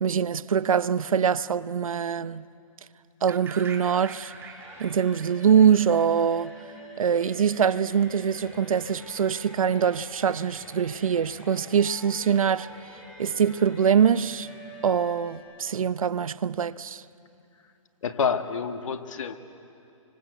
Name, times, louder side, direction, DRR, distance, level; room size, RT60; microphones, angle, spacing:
voice 1, 0.0-2.4 3.2-4.3 4.8-6.5 7.0-12.7 13.2-14.5 14.8-17.0, right 7 dB, 85° right, 0.8 m, -23 dB
sound 1, 3.3-7.2, right 5 dB, 15° right, 1.8 m, -44 dB
sound 2, 4.3-15.4, right 1 dB, 5° left, 6.3 m, -47 dB
voice 2, 18.0-19.4, left 6 dB, 70° left, 2.1 m, -28 dB
26.5 x 25.0 x 8.2 m
hypercardioid pair, 150°, 17 cm